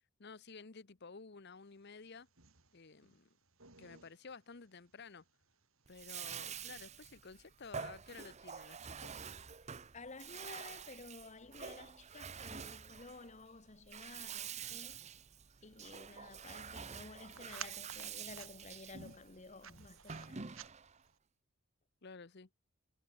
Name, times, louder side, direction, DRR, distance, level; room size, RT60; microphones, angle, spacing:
voice 1, 0.2-2.3 2.7-3.3 3.8-5.2 5.9-9.2 22.0-22.5, left 4 dB, 50° left, 0.9 m, -53 dB
sound 1, 1.8-21.2, right 7 dB, 70° right, 6.5 m, -59 dB
Bathtub (filling or washing), 5.9-21.0, right 7 dB, 30° right, 0.8 m, -48 dB
voice 2, 9.9-15.2 15.6-20.5, left 3 dB, 30° left, 1.1 m, -53 dB
head